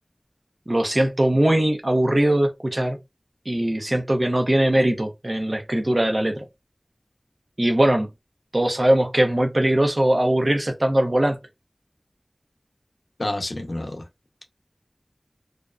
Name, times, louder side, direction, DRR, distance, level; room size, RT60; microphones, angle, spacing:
voice 1, 0.7-3.0 3.5-6.5 7.6-8.1 8.5-11.4, right 1 dB, 50° right, 0.6 m, -20 dB
voice 2, 13.2-14.0, left 1 dB, 85° left, 0.6 m, -28 dB
2.5 x 2.1 x 2.3 m
wide cardioid pair, 45°, 0 cm